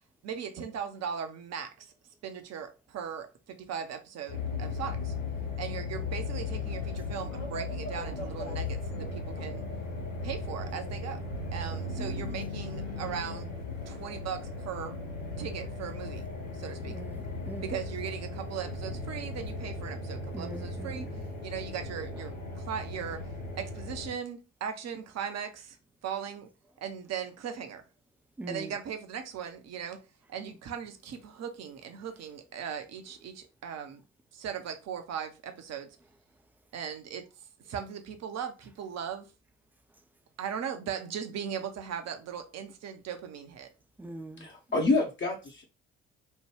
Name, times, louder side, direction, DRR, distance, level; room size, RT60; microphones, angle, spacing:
voice 1, 0.2-1.9 2.2-5.1 5.6-9.7 10.2-13.5 13.9-15.0 15.4-16.3 16.5-17.0 17.6-25.8 26.0-26.5 26.8-27.8 28.5-30.0 30.3-34.0 34.3-36.0 36.7-39.3 40.4-43.7, right 8 dB, 45° right, 0.7 m, -38 dB
sound 1, 4.3-24.1, left 3 dB, 90° left, 0.9 m, -37 dB
voice 2, 16.9-17.6 20.3-21.0 28.4-28.7 44.0-44.5, right 1 dB, 5° right, 0.3 m, -41 dB
voice 3, 44.4-45.6, left 3 dB, 30° left, 0.7 m, -28 dB
3.2 x 2.2 x 3.1 m
figure-of-eight pair, 50°, 38 cm